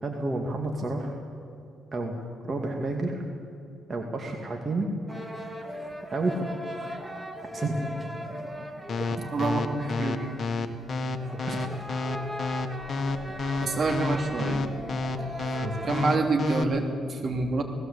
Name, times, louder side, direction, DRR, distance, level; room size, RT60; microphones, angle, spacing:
voice 1, 0.0-1.1 1.9-2.2 2.4-3.2 3.9-4.9 6.1-6.5 7.5-7.9 8.3-8.4 9.1-9.3 11.5-11.6 15.6-16.0, right 2 dB, 35° right, 1 dB, 2.3 m, -30 dB
sound 1, 5.1-16.2, equal, 10° right, 2.1 m, -39 dB
sound 2, 8.9-16.6, left 3 dB, 45° left, 1.6 m, -29 dB
voice 2, 9.3-10.3 13.6-14.6 15.9-17.6, right 3 dB, 50° right, 3 dB, 3.1 m, -27 dB
19.0 x 16.5 x 8.4 m, 2.5 s
cardioid pair, 90°, 0 cm